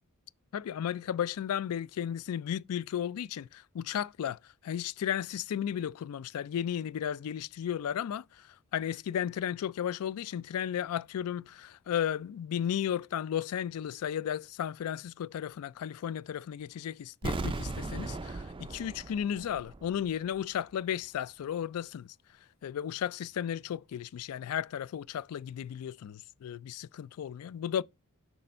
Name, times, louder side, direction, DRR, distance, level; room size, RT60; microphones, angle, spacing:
voice 1, 0.5-8.2 8.7-22.1 22.6-27.8, left 9 dB, 75° left, 0.3 m, -34 dB
sound 1, 17.2-20.1 20.4-20.5, right 3 dB, 25° right, 0.5 m, -37 dB
6.7 x 3.2 x 5.3 m
head